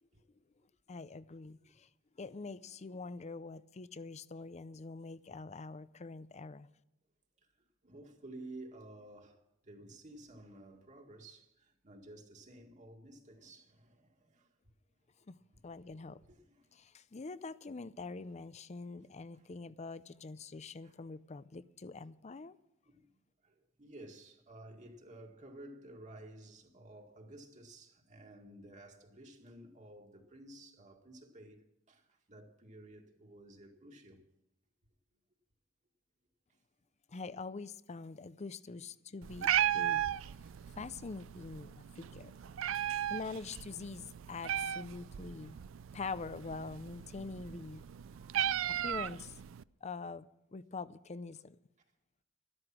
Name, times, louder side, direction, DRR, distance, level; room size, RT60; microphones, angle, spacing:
voice 1, 0.9-1.9 2.2-6.7 15.3-15.4 15.6-16.2 16.7-22.6 37.1-40.1 40.8-42.3 43.1-45.6 45.9-47.8 48.7-49.4 49.8-51.6, left 4 dB, 35° left, 0.5 m, -44 dB
voice 2, 7.8-14.5 15.5-15.8 16.2-16.7 18.9-19.5 20.8-21.0 22.9-23.1 23.4-31.6 31.9-34.2 42.3-42.9 45.3-45.6 47.4-47.6 48.1-48.4, right 1 dB, 40° right, 2.0 m, -54 dB
Meow, 39.2-49.6, right 11 dB, 75° right, 0.4 m, -36 dB
13.0 x 12.5 x 6.0 m
head